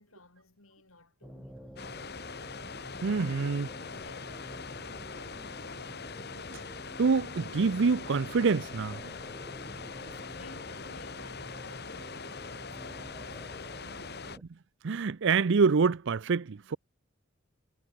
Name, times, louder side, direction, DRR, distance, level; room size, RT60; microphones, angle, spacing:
voice 1, 0.0-2.5 3.1-5.6 9.9-14.2, left 2 dB, 75° left, 7.1 m, -56 dB
sound 1, 1.2-14.4, equal, 5° right, 2.3 m, -49 dB
sound 2, 1.8-14.4, left 4 dB, 50° left, 3.7 m, -42 dB
voice 2, 3.0-3.7 6.5-6.6 7.0-9.1 14.8-16.8, right 5 dB, 60° right, 0.5 m, -26 dB
head